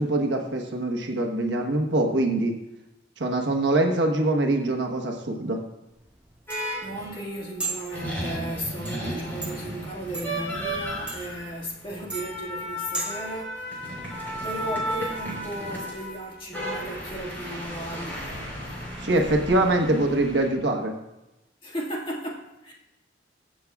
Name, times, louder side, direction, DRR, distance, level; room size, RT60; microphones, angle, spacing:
voice 1, 0.0-2.6 3.2-5.6 19.0-20.9, right 2 dB, 70° right, 3 dB, 1.2 m, -24 dB
sound 1, 5.9-13.3, right 3 dB, 5° right, 0.8 m, -38 dB
sound 2, 6.5-7.3 7.9-20.5, equal, 10° left, 4.0 m, -34 dB
voice 2, 6.8-18.4 21.6-22.7, right 1 dB, 30° left, -2 dB, 1.9 m, -35 dB
22.5 x 7.5 x 2.4 m, 0.96 s
head